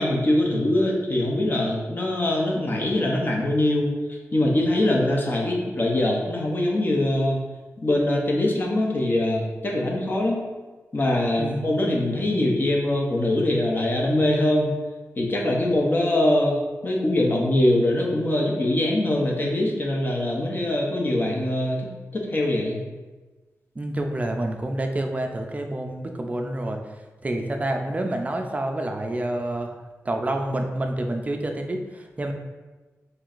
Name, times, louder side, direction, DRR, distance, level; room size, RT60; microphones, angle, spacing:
voice 1, 0.0-3.9 4.3-7.4 7.8-10.4 10.9-14.7 15.2-21.9 22.1-22.8, left 1 dB, 40° left, -1 dB, 0.7 m, -23 dB
voice 2, 23.8-26.8 27.2-29.7 30.0-32.3, right 1 dB, 25° right, 4 dB, 0.4 m, -28 dB
4.6 x 3.2 x 2.5 m, 1.2 s
wide cardioid pair, 115°, 5 cm